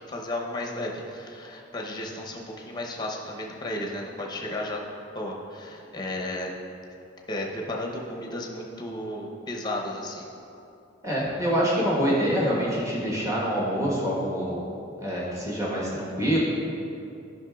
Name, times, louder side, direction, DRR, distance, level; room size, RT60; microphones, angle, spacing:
voice 1, 0.0-4.8 5.1-6.5 7.3-10.2, left 1 dB, 20° left, -1 dB, 0.7 m, -33 dB
voice 2, 11.0-14.6 15.0-16.4, equal, 15° right, -6 dB, 1.2 m, -26 dB
10.5 x 5.5 x 2.3 m, 2.6 s
head